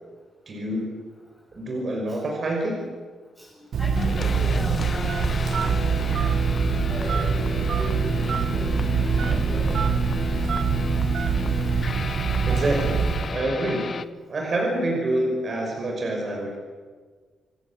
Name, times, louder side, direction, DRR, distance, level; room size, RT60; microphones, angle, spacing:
voice 1, 0.5-0.9 1.5-2.8 12.5-13.9 14.3-16.6, right 1 dB, 40° right, 0 dB, 5.7 m, -27 dB
voice 2, 3.4-6.4 6.9-9.9, equal, 5° left, -6 dB, 7.3 m, -38 dB
Telephone, 3.7-13.4, right 6 dB, 60° right, 1.6 m, -24 dB
sound 1, 3.9-14.1, left 5 dB, 40° left, 0.8 m, -33 dB
26.5 x 17.0 x 8.8 m, 1.5 s
cardioid pair, 130°, 0 cm